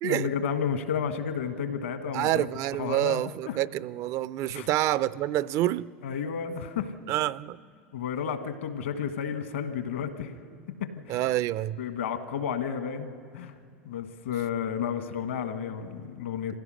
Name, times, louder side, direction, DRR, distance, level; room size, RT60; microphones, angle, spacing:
voice 1, 0.0-2.5 2.8-3.6 4.5-4.7 6.0-6.9 7.9-10.3 10.8-11.2 11.8-13.1 13.3-13.5 13.8-16.6, left 7 dB, 75° left, 1.5 m, -32 dB
voice 2, 2.1-5.9 7.1-7.6 11.1-11.8, right 14 dB, 50° right, 0.5 m, -27 dB
26.0 x 16.0 x 6.4 m
hypercardioid pair, 85°, 7 cm